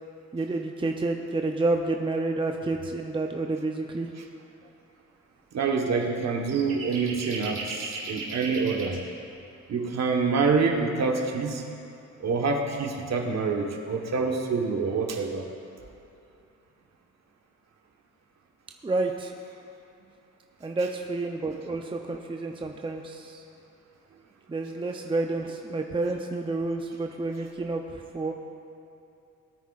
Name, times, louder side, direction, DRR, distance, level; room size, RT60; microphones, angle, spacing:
voice 1, 0.3-4.1 18.8-19.3 20.6-23.4 24.5-28.3, right 2 dB, 15° right, 3 dB, 0.7 m, -29 dB
voice 2, 5.5-9.0 9.7-11.6 12.2-15.4, right 4 dB, 55° right, 2 dB, 1.5 m, -26 dB
sound 1, 6.0-6.1 6.5-9.0, right 4 dB, 80° right, 2.5 m, -36 dB
19.0 x 9.2 x 2.5 m, 2.7 s
supercardioid pair, 75°, 32 cm